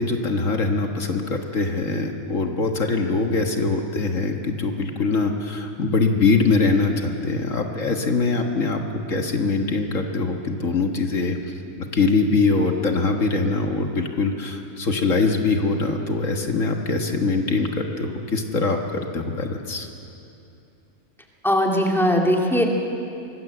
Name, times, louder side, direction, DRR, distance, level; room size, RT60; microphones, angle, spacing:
voice 1, 0.0-11.4 11.9-17.7 18.0-19.9, left 3 dB, 70° left, 3 dB, 1.8 m, -23 dB
voice 2, 21.4-22.7, equal, ahead, 0 dB, 2.5 m, -19 dB
24.5 x 19.5 x 7.9 m, 2.7 s
omnidirectional pair, 1.4 m